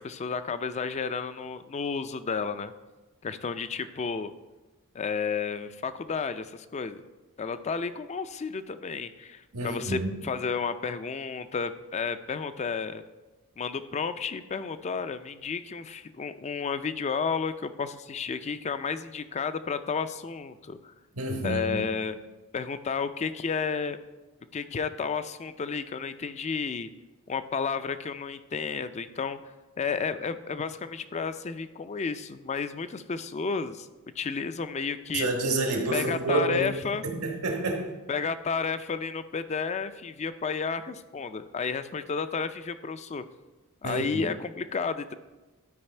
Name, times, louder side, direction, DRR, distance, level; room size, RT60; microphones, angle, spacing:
voice 1, 0.0-2.7 3.2-4.3 4.9-7.0 7.4-13.0 13.6-20.9 21.4-22.1 22.5-24.0 24.5-26.9 27.3-29.4 29.8-33.9 34.2-35.3 35.9-37.0 38.1-43.2 43.8-45.1, left 5 dB, 30° left, 12 dB, 0.4 m, -32 dB
voice 2, 9.5-10.1 21.1-21.8 35.1-36.7 37.0-37.9 43.8-44.2, right 2 dB, 85° right, 2 dB, 1.5 m, -28 dB
12.0 x 4.8 x 4.4 m, 1.2 s
head